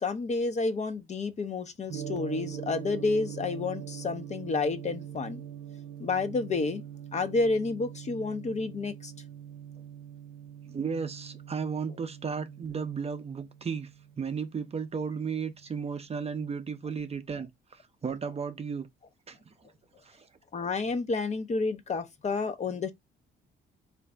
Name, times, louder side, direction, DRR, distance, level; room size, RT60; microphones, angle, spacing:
voice 1, 0.0-5.4 6.0-6.8 7.1-9.1 20.5-22.9, left 3 dB, 35° left, 0.6 m, -30 dB
Gong, 1.9-16.1, right 9 dB, 90° right, 0.6 m, -43 dB
voice 2, 10.7-13.9 14.2-18.9 19.3-19.7 20.0-20.3, right 6 dB, 30° right, 0.5 m, -34 dB
3.8 x 2.6 x 3.3 m
cardioid pair, 90°, 20 cm